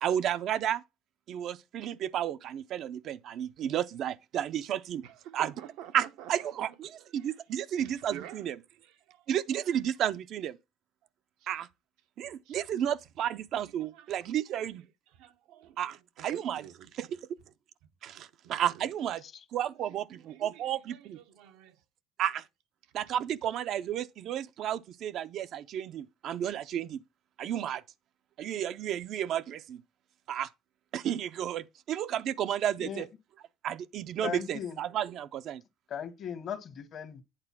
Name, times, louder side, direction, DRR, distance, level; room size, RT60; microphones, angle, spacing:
voice 1, 0.0-0.8 1.3-5.0 5.3-5.5 5.9-8.6 9.3-10.6 11.5-11.7 12.2-14.8 15.8-16.6 17.0-17.2 18.0-19.2 19.5-21.2 22.2-22.4 22.9-27.0 27.4-27.8 28.4-29.8 30.3-30.5 30.9-33.1 33.6-35.6, right 10 dB, 60° right, 0.5 m, -32 dB
voice 2, 5.0-6.6 7.0-7.3 7.8-8.4 8.7-9.3 11.4-11.5 12.4-12.6 13.8-14.7 15.1-16.9 18.1-18.9 19.9-20.6 20.9-21.8, right 11 dB, 85° right, 0.8 m, -50 dB
voice 3, 34.2-34.8 35.9-37.2, left 8 dB, 50° left, 1.2 m, -37 dB
8.9 x 3.9 x 5.8 m
cardioid pair, 105°, 0 cm